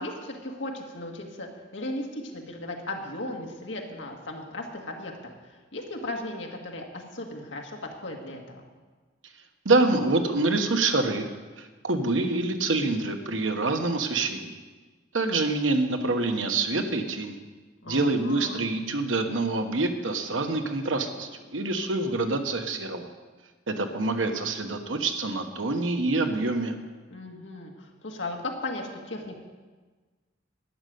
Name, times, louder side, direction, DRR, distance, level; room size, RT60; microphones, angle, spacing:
voice 1, 0.0-5.1 5.4-8.6 17.8-18.7 27.1-29.4, left 2 dB, 70° left, 1 dB, 1.9 m, -36 dB
voice 2, 9.6-11.3 11.6-14.5 15.1-17.4 17.9-23.1 23.7-26.7, right 3 dB, 90° right, 6 dB, 1.2 m, -26 dB
12.0 x 6.6 x 9.3 m, 1.3 s
head